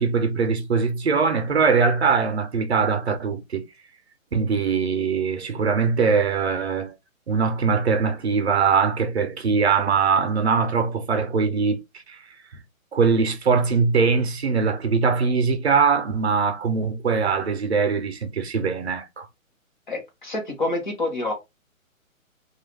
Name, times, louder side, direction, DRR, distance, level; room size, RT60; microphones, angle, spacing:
voice 1, 0.0-3.6 4.3-6.9 7.3-11.8 12.1-12.2 12.9-19.3, right 5 dB, 50° right, 0.6 m, -22 dB
voice 2, 19.9-21.3, left 2 dB, 35° left, 0.9 m, -27 dB
2.3 x 2.1 x 3.1 m
hypercardioid pair, 175°, 42 cm